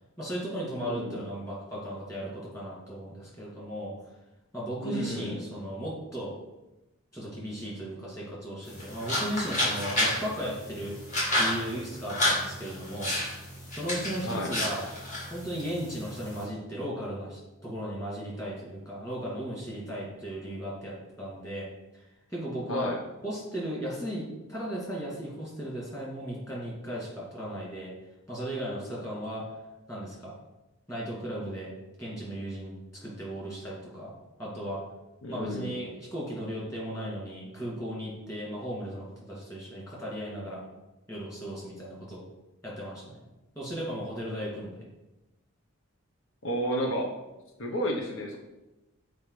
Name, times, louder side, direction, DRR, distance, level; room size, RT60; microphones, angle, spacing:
voice 1, 0.2-3.9 4.5-6.3 7.1-11.0 11.3-13.1 13.7-14.8 15.3-21.7 21.9-22.0 22.3-22.9 23.2-27.9 28.3-29.5 29.9-30.3 30.9-31.7 32.0-32.7 33.0-34.1 34.4-34.8 35.3-40.6 41.1-42.2 42.6-43.2 43.5-44.7, equal, 15° left, -5 dB, 2.5 m, -36 dB
voice 2, 0.8-1.2 4.8-5.4 14.2-14.5 22.7-23.0 35.2-35.8 46.4-47.1 47.6-48.4, equal, 85° left, 2 dB, 1.1 m, -31 dB
sound 1, 8.6-16.5, left 1 dB, 35° left, 2.3 m, -31 dB
7.1 x 4.6 x 5.0 m, 0.99 s
head